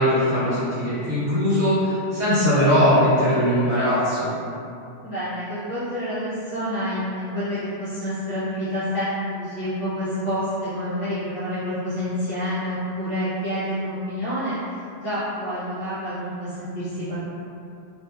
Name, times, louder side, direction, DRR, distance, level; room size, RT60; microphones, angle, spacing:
voice 1, 0.0-4.3, equal, 25° right, -17 dB, 1.5 m, -20 dB
voice 2, 5.0-14.6 15.0-17.2, equal, 40° left, -14 dB, 0.5 m, -28 dB
2.8 x 2.5 x 2.3 m, 2.6 s
omnidirectional pair, 1.2 m